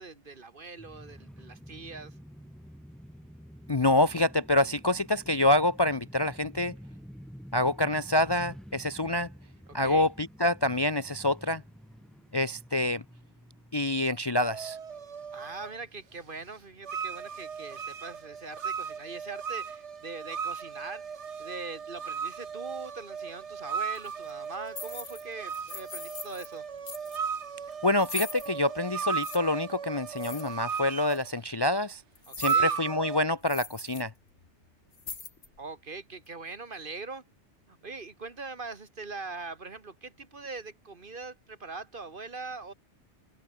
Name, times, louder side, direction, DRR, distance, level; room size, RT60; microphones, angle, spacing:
voice 1, 0.0-2.1 9.8-10.1 15.3-21.0 21.4-26.6 32.3-32.8 35.6-37.2 37.7-42.7, right 3 dB, 50° right, 1.9 m, -42 dB
sound 1, 0.8-19.3, equal, ahead, 7.8 m, -50 dB
voice 2, 3.7-6.7 7.5-9.3 9.7-11.6 12.3-13.0 13.7-14.8 27.8-32.0 32.4-34.1, left 1 dB, 25° left, 0.6 m, -26 dB
sound 2, 14.4-15.7 16.8-31.3 32.4-33.2, right 6 dB, 85° right, 1.7 m, -35 dB
sound 3, 23.9-24.1 24.7-25.2 25.5-26.5 26.9-27.2 28.0-28.5 29.2-29.4 30.2-30.8 31.1-31.2 32.1-32.6 33.0-33.1 33.4-34.0 34.3-34.5 34.9-35.6, left 4 dB, 75° left, 2.4 m, -41 dB
omnidirectional pair, 1.2 m